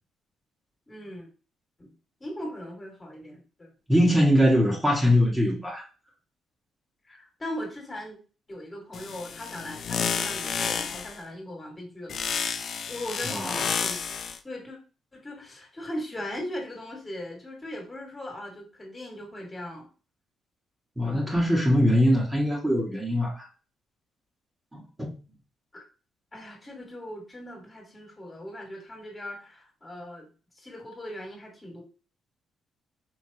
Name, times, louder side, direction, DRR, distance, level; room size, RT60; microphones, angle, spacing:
voice 1, 0.9-1.3 1.8-1.9 2.2-4.0 7.0-8.2 8.5-12.2 12.9-14.0 14.4-14.8 15.1-19.9 21.0-21.3 25.7-25.8 26.3-30.3 30.6-31.8, left 1 dB, 25° left, 1 dB, 2.0 m, -39 dB
voice 2, 3.9-5.8 13.3-13.7 21.0-23.5 24.7-25.1, equal, 10° right, -3 dB, 1.6 m, -22 dB
sound 1, 8.9-11.2 12.1-14.4, left 6 dB, 55° left, 0.5 m, -30 dB
4.9 x 3.1 x 2.9 m, 0.35 s
cardioid pair, 90°, 0 cm